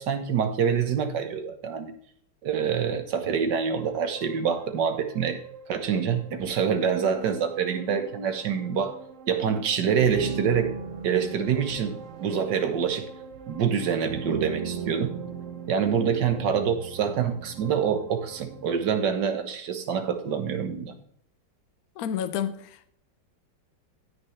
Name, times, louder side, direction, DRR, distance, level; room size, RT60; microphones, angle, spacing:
voice 1, 0.0-1.9 2.4-5.4 5.7-9.0 9.3-10.8 11.0-13.1 13.5-15.1 15.7-20.9, right 7 dB, 70° right, 8 dB, 1.7 m, -26 dB
sound 1, 3.8-19.0, right 6 dB, 50° right, 1.1 m, -39 dB
voice 2, 22.0-22.9, left 9 dB, 60° left, 12 dB, 1.1 m, -30 dB
16.0 x 6.2 x 3.3 m, 0.65 s
omnidirectional pair, 2.0 m